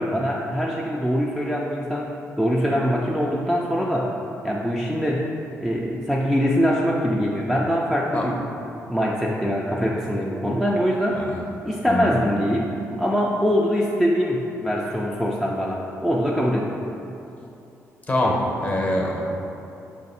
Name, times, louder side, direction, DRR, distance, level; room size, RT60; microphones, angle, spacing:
voice 1, 0.0-4.1 4.4-5.3 5.6-8.4 8.9-11.3 11.6-12.7 13.0-16.8, equal, ahead, -4 dB, 0.4 m, -23 dB
voice 2, 11.9-12.2 18.1-19.2, left 1 dB, 30° left, -1 dB, 0.8 m, -24 dB
5.0 x 2.5 x 4.0 m, 2.8 s
cardioid pair, 85°, 6 cm